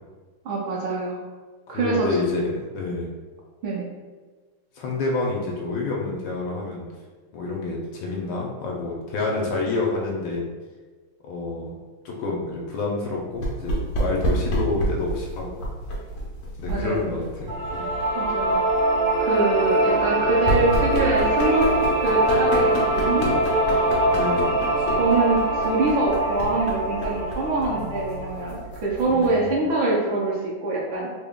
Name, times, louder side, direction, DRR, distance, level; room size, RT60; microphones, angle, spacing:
voice 1, 0.4-1.2 1.7-2.1 3.6-3.9 16.7-17.2 18.1-18.6 19.2-21.7 22.0-23.8 25.0-31.1, right 3 dB, 75° right, -4 dB, 1.4 m, -24 dB
voice 2, 1.7-2.5 2.7-3.1 4.8-6.9 7.3-10.4 11.2-11.7 12.0-15.7 16.6-17.8 24.1-25.0 29.1-29.7, left 3 dB, 80° left, -2 dB, 1.4 m, -28 dB
sound 1, 13.3-29.5, right 1 dB, 60° left, 0.9 m, -30 dB
sound 2, 17.5-28.5, right 1 dB, 20° right, 0.5 m, -23 dB
3.8 x 2.2 x 3.5 m, 1.4 s
omnidirectional pair, 2.2 m